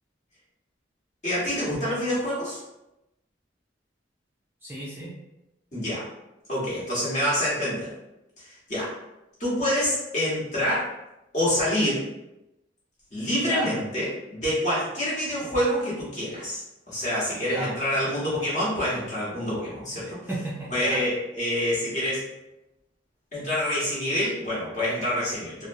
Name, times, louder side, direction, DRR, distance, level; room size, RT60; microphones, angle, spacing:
voice 1, 1.2-2.6 5.7-6.0 6.5-7.9 8.4-8.9 9.4-10.9 11.3-12.0 13.1-20.1 20.7-22.3 23.3-25.7, left 1 dB, 40° left, -8 dB, 1.1 m, -27 dB
voice 2, 4.6-5.1 13.4-13.7 17.5-17.7 20.0-21.0, right 2 dB, 10° right, -7 dB, 0.4 m, -33 dB
2.5 x 2.0 x 2.6 m, 0.92 s
head